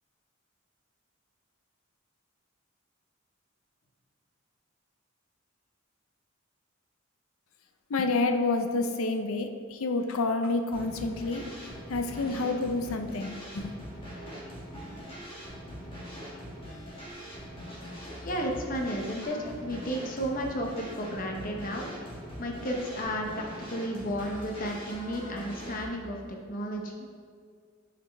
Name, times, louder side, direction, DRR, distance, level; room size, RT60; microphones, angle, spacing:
voice 1, 7.9-11.4 11.9-13.7, left 3 dB, 85° left, 6 dB, 0.5 m, -29 dB
sound 1, 10.7-25.8, equal, 25° left, 1.8 m, -42 dB
voice 2, 18.2-21.9 22.4-27.1, equal, 40° left, 1 dB, 0.7 m, -33 dB
7.4 x 5.0 x 3.4 m, 2.1 s
head